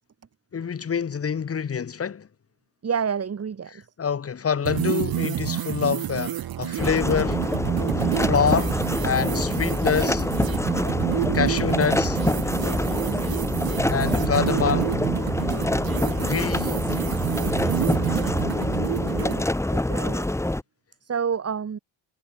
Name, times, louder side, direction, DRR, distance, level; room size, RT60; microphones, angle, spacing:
voice 1, 0.5-2.3 4.0-7.5 8.2-8.8 9.0-10.3 11.3-12.2 13.9-15.0 16.2-16.7, left 7 dB, 30° left, 1.5 m, -26 dB
voice 2, 2.8-3.8 12.9-13.3 19.7-20.3 21.0-21.8, right 6 dB, 30° right, 3.1 m, -29 dB
sound 1, 4.7-19.4, right 12 dB, 45° right, 1.0 m, -28 dB
sound 2, 6.8-20.6, left 1 dB, 5° left, 2.0 m, -25 dB
cardioid pair, 170°, 49 cm